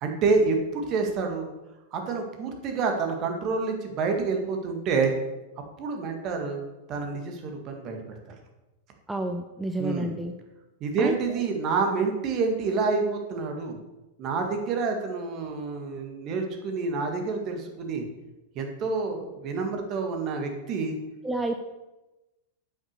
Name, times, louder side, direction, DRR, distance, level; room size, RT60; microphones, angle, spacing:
voice 1, 0.0-1.5 1.9-5.1 5.8-6.6 6.9-8.0 8.3-8.4 9.8-10.1 10.8-13.8 14.2-18.0 18.6-21.0, right 4 dB, 40° right, 3 dB, 1.9 m, -28 dB
voice 2, 9.1-10.3 11.0-11.2 21.2-21.5, right 2 dB, 10° right, 4 dB, 0.7 m, -29 dB
8.0 x 6.1 x 6.7 m, 1.0 s
hypercardioid pair, 95°, 0 cm